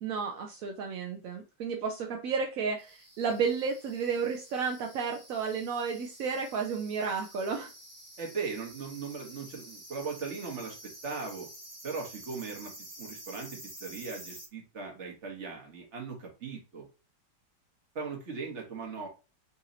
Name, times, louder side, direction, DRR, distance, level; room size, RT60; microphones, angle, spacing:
voice 1, 0.0-7.7, right 5 dB, 65° right, 0.8 m, -32 dB
sound 1, 2.8-14.5, right 1 dB, 15° right, 0.9 m, -49 dB
voice 2, 8.2-11.5 11.8-12.7 13.0-16.9 17.9-19.1, right 5 dB, 45° right, 1.4 m, -38 dB
4.1 x 2.8 x 3.8 m
omnidirectional pair, 2.0 m